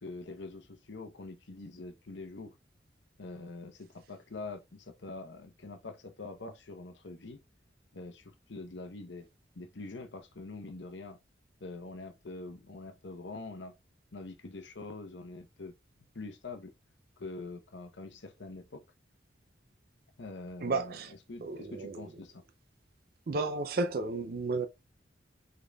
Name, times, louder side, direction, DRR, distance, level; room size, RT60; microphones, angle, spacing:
voice 1, 0.0-2.5 3.2-7.4 7.9-9.3 9.5-11.2 11.6-13.7 14.1-15.7 16.1-16.7 17.2-18.8 20.2-22.4, left 3 dB, 75° left, 0.8 m, -44 dB
voice 2, 20.6-21.1 21.4-22.1 23.3-24.7, right 3 dB, 50° right, 0.4 m, -33 dB
5.2 x 3.9 x 2.3 m
head